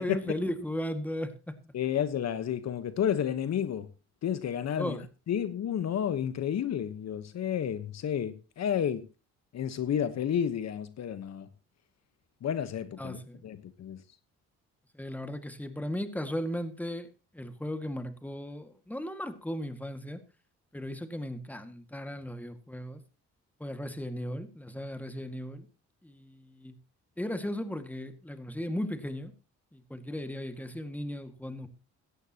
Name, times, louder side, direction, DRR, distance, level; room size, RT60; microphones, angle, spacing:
voice 1, 0.0-1.3 4.8-5.0 13.0-13.4 14.9-17.1 17.3-20.2 20.7-23.0 23.6-25.7 26.0-26.7 27.2-29.3 29.7-31.7, equal, 5° left, 1.9 m, -36 dB
voice 2, 1.7-3.9 4.2-5.0 5.3-9.0 9.5-11.5 12.4-14.0, left 9 dB, 60° left, 1.2 m, -31 dB
16.5 x 13.5 x 2.9 m
cardioid pair, 90°, 30 cm